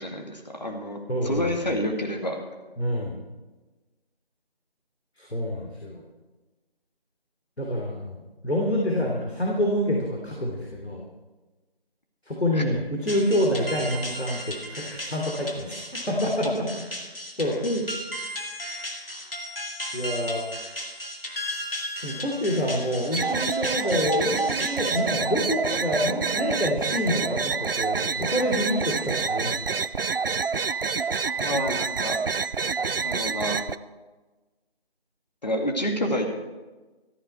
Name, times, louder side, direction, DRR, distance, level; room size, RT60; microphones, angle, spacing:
voice 1, 0.0-2.4 12.5-12.6 16.4-16.5 17.6-17.8 31.4-32.2 32.8-33.6 35.4-36.4, equal, 45° left, 2 dB, 2.1 m, -29 dB
voice 2, 1.1-1.4 2.8-3.2 5.2-6.0 7.6-11.1 12.2-16.7 17.4-17.6 19.9-20.4 22.0-29.8, left 1 dB, 90° left, -1 dB, 3.1 m, -27 dB
sound 1, 13.1-25.0, equal, 65° left, 2.3 m, -36 dB
sound 2, 23.1-33.8, right 5 dB, 65° right, 0.5 m, -27 dB
14.0 x 14.0 x 4.4 m, 1.2 s
figure-of-eight pair, 170°, 31 cm